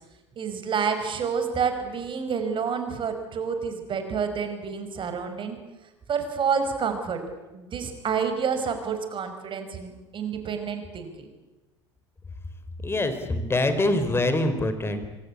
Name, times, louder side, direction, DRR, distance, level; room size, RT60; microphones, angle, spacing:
voice 1, 0.4-5.6 6.1-7.2 7.5-11.3, right 6 dB, 35° right, 7 dB, 5.4 m, -29 dB
voice 2, 12.8-15.1, left 2 dB, 15° left, 9 dB, 4.1 m, -24 dB
26.5 x 25.5 x 8.4 m, 1.1 s
figure-of-eight pair, 70°, 15 cm